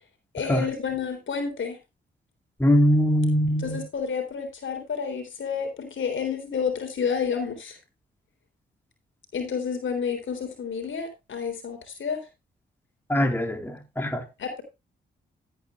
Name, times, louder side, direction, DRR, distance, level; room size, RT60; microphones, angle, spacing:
voice 1, 0.3-1.8 3.6-7.8 9.3-12.2 14.4-14.6, left 6 dB, 65° left, 3.6 m, -30 dB
voice 2, 2.6-3.8 13.1-14.2, equal, 10° left, 3.6 m, -22 dB
15.0 x 9.2 x 2.5 m
supercardioid pair, 45°, 21 cm